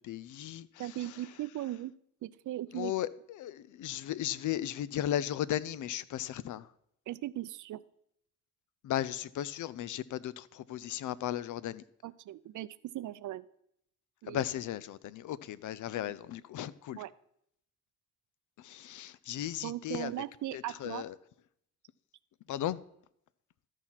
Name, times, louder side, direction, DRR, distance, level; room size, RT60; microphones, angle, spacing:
voice 1, 0.1-0.7 2.7-3.1 3.3-6.6 8.8-11.8 14.3-17.0 18.6-20.1 20.8-21.1 22.5-22.8, left 12 dB, 70° left, 0.6 m, -35 dB
voice 2, 0.8-1.9 2.2-2.9 7.1-7.8 12.0-13.4 14.2-14.4 16.9-17.1 19.6-21.1, right 14 dB, 65° right, 0.6 m, -38 dB
13.0 x 4.6 x 5.7 m
cardioid pair, 70°, 32 cm